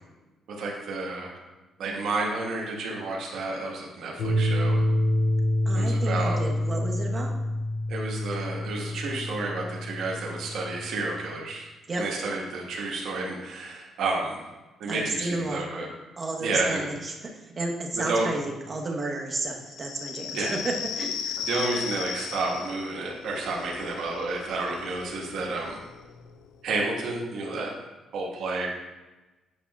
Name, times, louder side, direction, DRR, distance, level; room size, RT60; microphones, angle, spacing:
voice 1, 0.5-1.4 1.8-4.9 5.7-6.4 7.9-11.7 12.0-14.4 14.8-15.9 16.4-16.8 18.1-18.3 20.3-20.5 21.5-25.8 26.6-27.7 28.1-28.7, right 3 dB, 75° right, -2 dB, 1.4 m, -30 dB
sound 1, 4.2-11.3, left 1 dB, 60° left, 0.7 m, -27 dB
voice 2, 5.6-7.3 11.9-12.0 14.8-15.6 16.2-21.4, right 2 dB, 35° right, 1 dB, 1.1 m, -32 dB
sound 2, 19.7-26.9, left 8 dB, 75° left, 0.3 m, -37 dB
8.5 x 5.2 x 2.4 m, 1.1 s
cardioid pair, 90°, 0 cm